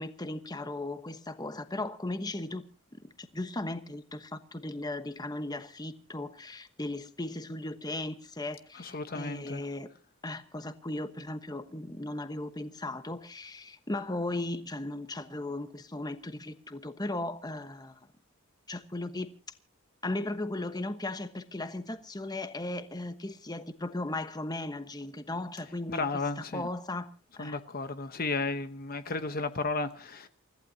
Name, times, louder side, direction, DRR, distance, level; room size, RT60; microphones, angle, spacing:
voice 1, 0.0-2.6 3.0-9.9 10.2-18.0 18.7-19.3 20.0-26.0 26.4-27.1 27.4-27.6, left 2 dB, 20° left, 1.1 m, -37 dB
voice 2, 8.7-9.6 25.9-26.7 27.4-30.3, left 3 dB, 45° left, 1.0 m, -33 dB
29.5 x 15.0 x 2.8 m
head